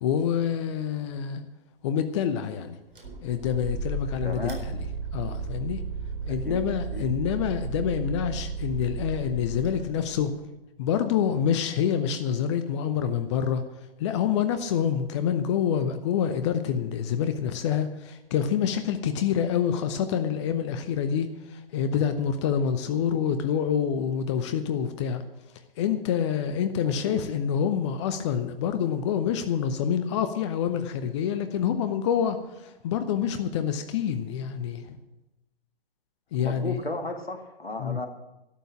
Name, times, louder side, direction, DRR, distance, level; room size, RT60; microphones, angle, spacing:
voice 1, 0.0-1.4 1.8-2.8 3.2-4.7 5.1-5.8 6.3-10.3 10.8-13.6 14.0-25.2 25.8-35.0 36.3-36.8 37.8-38.0, left 8 dB, 30° left, 9 dB, 0.8 m, -27 dB
sound 1, 2.9-10.3, right 4 dB, 65° right, 4.1 m, -34 dB
voice 2, 4.2-4.6 6.4-6.6 6.9-7.0 26.8-27.2 36.3-38.1, left 2 dB, 80° left, 5 dB, 2.0 m, -34 dB
12.5 x 8.0 x 8.6 m, 0.97 s
figure-of-eight pair, 120°, 29 cm